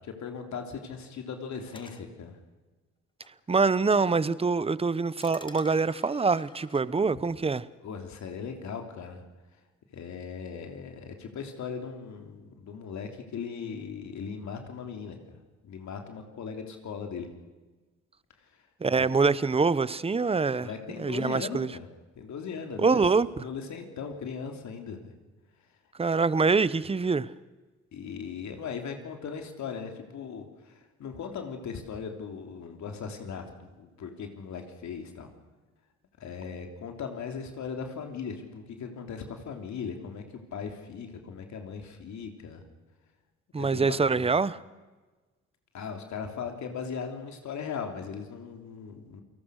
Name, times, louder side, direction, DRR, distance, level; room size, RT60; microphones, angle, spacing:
voice 1, 0.0-2.4 7.8-9.2 9.9-15.2 15.6-17.3 19.0-19.2 20.6-21.9 22.2-23.0 23.4-25.1 27.9-35.3 36.2-42.6 43.6-44.3 45.7-49.2, left 6 dB, 65° left, 3.3 m, -38 dB
sound 1, 1.7-2.0 3.2-3.3 3.9-4.0 5.2-6.8, left 2 dB, 15° left, 1.9 m, -49 dB
voice 2, 3.5-7.6 18.8-20.7 21.0-21.7 22.8-23.4 26.0-27.3 43.5-44.6, right 4 dB, 20° right, 0.9 m, -25 dB
29.0 x 18.5 x 6.5 m
cardioid pair, 90°, 30 cm